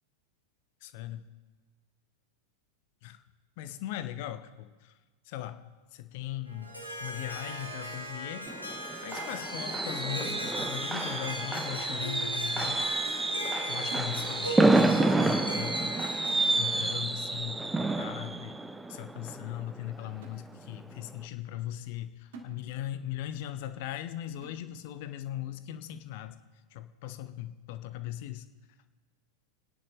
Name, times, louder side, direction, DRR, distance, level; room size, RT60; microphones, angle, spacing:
voice 1, 0.8-1.2 3.0-3.2 3.6-4.9 5.3-5.7 5.9-6.7 7.0-8.5 9.0-12.9 13.7-16.0 16.6-18.6 18.9-26.4 26.7-28.5, left 12 dB, 50° left, 11 dB, 0.8 m, -39 dB
Harp, 6.5-17.0, right 1 dB, 85° left, 2.0 m, -39 dB
Fireworks, 8.5-20.2 20.5-20.8 21.1-21.2, right 2 dB, 10° right, 0.6 m, -29 dB
sound 1, 11.9-12.6 12.9-13.1 13.4-14.7 15.0-15.2 15.5-16.7 17.0-17.2 17.5-17.7 18.0-18.6 19.1-19.2 19.7-19.8 20.2-20.9 21.3-21.4 21.8-22.0 22.3-23.1 23.4-23.5 23.9-24.0 24.4-25.0 25.5-25.6 25.9-26.1, right 3 dB, 55° right, 1.8 m, -52 dB
30.0 x 10.5 x 3.2 m, 1.3 s
figure-of-eight pair, 90°, 0 cm